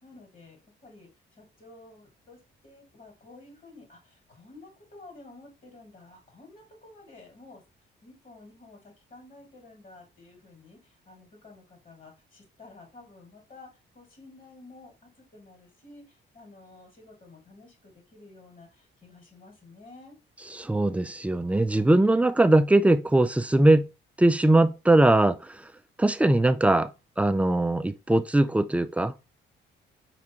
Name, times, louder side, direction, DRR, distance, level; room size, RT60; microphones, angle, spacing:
voice 1, 0.0-7.6 8.0-20.2, left 2 dB, 40° left, 2.4 m, -51 dB
voice 2, 20.6-23.9 24.2-25.6 26.0-26.9 27.2-29.1, right 2 dB, 5° right, 0.3 m, -21 dB
4.8 x 3.4 x 2.9 m
cardioid pair, 90°, 20 cm